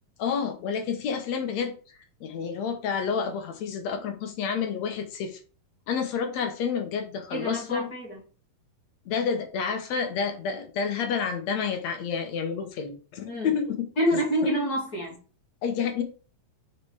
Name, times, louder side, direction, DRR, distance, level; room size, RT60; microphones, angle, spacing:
voice 1, 0.2-1.7 2.2-5.4 5.9-7.9 9.1-13.8 15.6-16.0, left 6 dB, 65° left, 1.9 m, -29 dB
voice 2, 7.3-8.2 13.3-13.5 14.0-15.2, equal, 30° left, 2.3 m, -27 dB
5.9 x 5.7 x 4.7 m
omnidirectional pair, 4.1 m